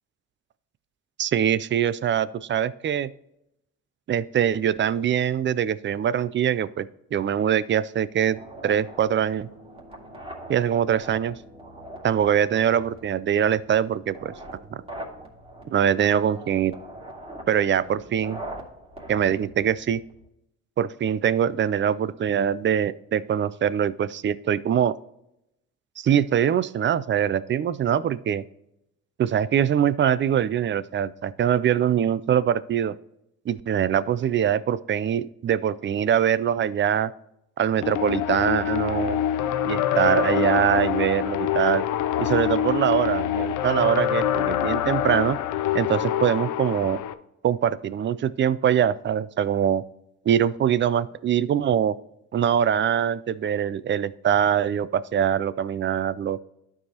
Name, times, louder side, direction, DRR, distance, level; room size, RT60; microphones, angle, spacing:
voice 1, 1.2-3.1 4.1-9.5 10.5-11.4 12.0-14.3 15.7-16.7 17.5-18.4 19.1-20.0 20.8-24.9 26.0-28.4 29.2-32.9 33.5-37.1 37.6-39.2 39.6-41.8 42.2-45.4 45.7-47.0 47.4-49.8 50.3-52.0 52.3-56.4, right 9 dB, 40° right, 17 dB, 0.4 m, -23 dB
sound 1, 8.3-20.3, right 1 dB, 20° right, 2.3 m, -42 dB
sound 2, 37.8-47.1, left 11 dB, 80° left, 0.6 m, -25 dB
12.0 x 4.8 x 2.9 m, 0.83 s
cardioid pair, 90°, 30 cm